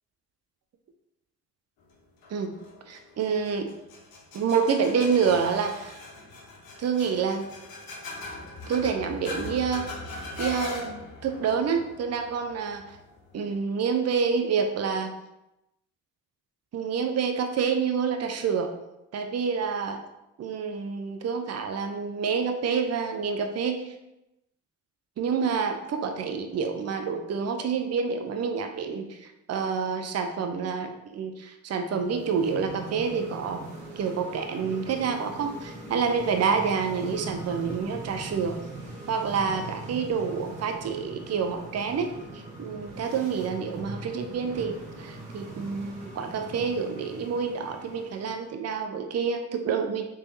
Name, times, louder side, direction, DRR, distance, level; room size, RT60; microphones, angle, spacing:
sound 1, 2.2-13.5, left 2 dB, 60° left, 0.9 m, -40 dB
voice 1, 2.9-3.7 4.3-6.0 6.8-7.5 8.7-9.8 10.4-11.0 11.2-12.8 13.3-15.1 16.7-18.7 19.1-20.0 20.4-23.9 25.2-33.6 34.0-38.6 39.1-50.1, right 6 dB, 40° right, 5 dB, 0.6 m, -28 dB
sound 2, 31.9-48.5, right 2 dB, 70° right, 1.1 m, -41 dB
3.3 x 3.3 x 2.7 m, 0.90 s
hypercardioid pair, 45°, 40 cm